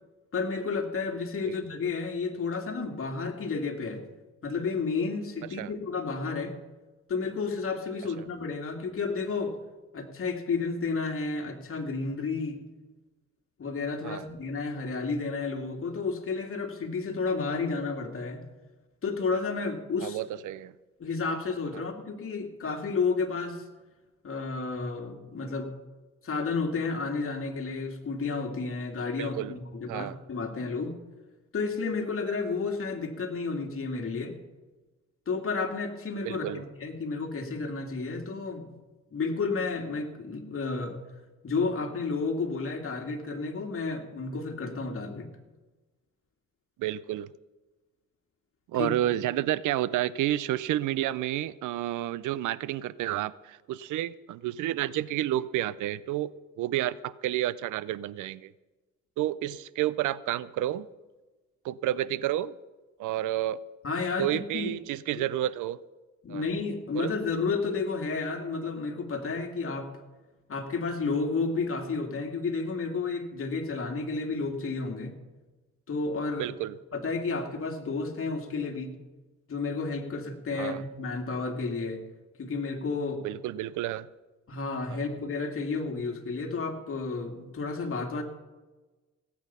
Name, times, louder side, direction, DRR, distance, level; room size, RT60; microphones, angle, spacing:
voice 1, 0.3-4.0 4.4-6.5 7.1-9.5 9.9-12.6 13.6-18.4 19.0-20.2 21.0-23.6 24.2-25.7 26.2-30.9 31.5-34.3 35.3-38.8 39.1-41.0 41.4-45.3 48.8-48.9 63.8-64.7 65.2-65.3 66.2-69.9 70.5-75.1 75.9-76.5 76.9-78.9 79.5-82.0 82.4-83.2 84.5-88.2, left 4 dB, 45° left, 3 dB, 2.3 m, -31 dB
voice 2, 20.0-20.7 29.2-29.5 29.9-30.2 36.3-36.6 46.8-47.3 48.7-56.3 56.6-58.5 59.2-60.9 61.6-62.5 63.0-63.6 64.2-65.8 66.3-66.4 66.9-67.1 76.4-76.8 80.6-80.8 83.2-84.1 84.9-85.0, right 13 dB, 80° right, 19 dB, 0.6 m, -30 dB
17.5 x 8.6 x 5.6 m, 1.2 s
cardioid pair, 90°, 30 cm